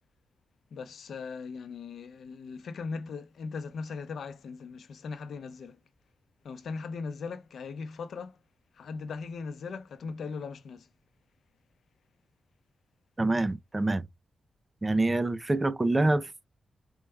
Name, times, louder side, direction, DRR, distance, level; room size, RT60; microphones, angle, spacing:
voice 1, 0.7-5.8 6.4-8.4 8.7-10.9, left 4 dB, 80° left, 0.6 m, -39 dB
voice 2, 13.2-14.1 14.8-16.5, right 2 dB, 20° right, 0.4 m, -26 dB
4.6 x 2.1 x 3.4 m
wide cardioid pair, 145°, 0 cm